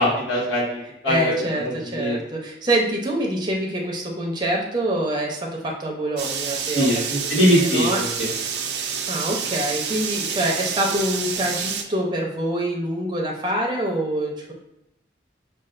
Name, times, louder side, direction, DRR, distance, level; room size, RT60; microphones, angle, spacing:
voice 1, 0.0-1.4 1.9-2.2 6.7-7.0 7.3-8.3, equal, 75° left, -6 dB, 1.5 m, -21 dB
voice 2, 1.1-6.9 7.3-8.0 9.1-14.5, right 1 dB, 25° right, -2 dB, 0.6 m, -25 dB
sound 1, 6.2-11.8, right 6 dB, 60° right, 0.4 m, -28 dB
5.4 x 2.4 x 2.5 m, 0.86 s
head